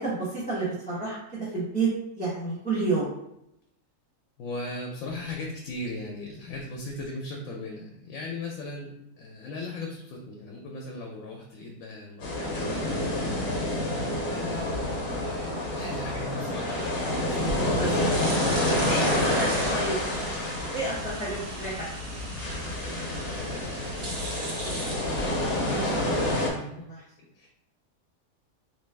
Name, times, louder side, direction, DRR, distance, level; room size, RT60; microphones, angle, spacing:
voice 1, 0.0-1.9 2.2-3.1 14.2-15.2 17.6-17.9 18.9-20.0 20.7-22.3 24.6-25.0 26.7-27.0, right 3 dB, 10° left, -9 dB, 0.6 m, -31 dB
voice 2, 4.4-13.5 14.2-18.0 18.9-19.8 23.1-25.0 25.5-26.8 27.2-27.5, left 2 dB, 85° left, -1 dB, 1.0 m, -39 dB
sound 1, 12.2-26.5, left 1 dB, 50° left, 1.0 m, -28 dB
sound 2, 17.5-25.8, right 1 dB, 85° right, 1.2 m, -38 dB
3.1 x 2.2 x 3.2 m, 0.82 s
omnidirectional pair, 1.4 m